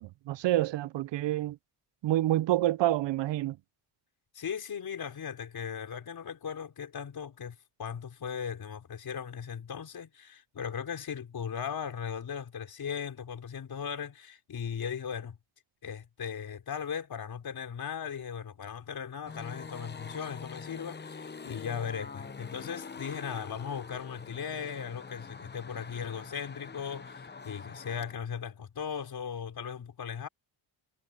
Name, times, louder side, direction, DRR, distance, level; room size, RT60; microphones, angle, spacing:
voice 1, 0.0-1.6 2.0-3.6, right 14 dB, 60° right, 0.5 m, -28 dB
voice 2, 4.3-15.4 15.8-30.3, left 7 dB, 45° left, 4.3 m, -38 dB
sound 1, 19.3-28.1, left 5 dB, 20° left, 0.9 m, -45 dB
wide cardioid pair, 180°, 50 cm